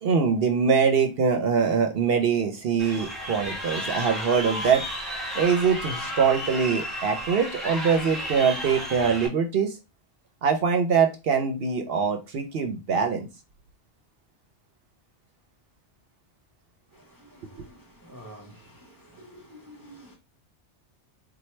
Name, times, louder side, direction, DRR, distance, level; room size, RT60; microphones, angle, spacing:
voice 1, 0.0-4.8 5.3-9.8 10.4-13.3, right 6 dB, 60° right, 0.8 m, -23 dB
Crowd, 2.8-9.3, equal, ahead, 1.4 m, -33 dB
voice 2, 16.9-20.2, equal, 25° right, 0.5 m, -49 dB
4.4 x 2.2 x 3.1 m
omnidirectional pair, 1.2 m